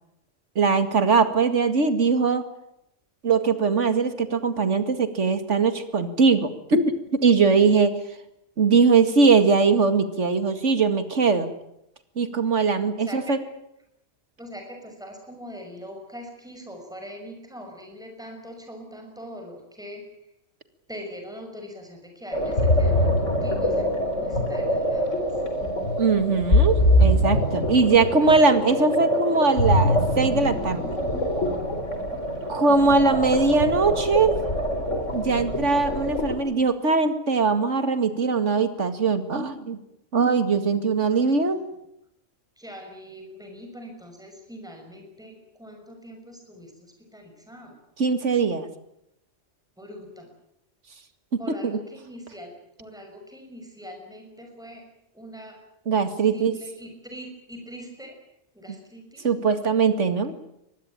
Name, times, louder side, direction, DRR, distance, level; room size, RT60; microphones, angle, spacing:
voice 1, 0.6-2.4 3.2-8.0 8.6-11.5 12.2-13.4 26.0-30.9 32.5-34.4 35.1-39.8 40.1-41.6 48.0-48.7 51.3-51.8 55.9-56.6 59.2-60.3, right 4 dB, 80° right, 10 dB, 2.4 m, -21 dB
voice 2, 14.4-20.1 20.9-25.2 41.4-41.5 42.6-47.8 49.8-50.3 51.4-52.5 52.8-54.8 55.1-55.6 56.3-58.2 58.5-59.8, equal, 5° right, 3 dB, 6.0 m, -42 dB
sound 1, 22.3-36.4, equal, 85° left, 4.6 m, -24 dB
24.0 x 20.0 x 8.9 m, 0.82 s
omnidirectional pair, 1.2 m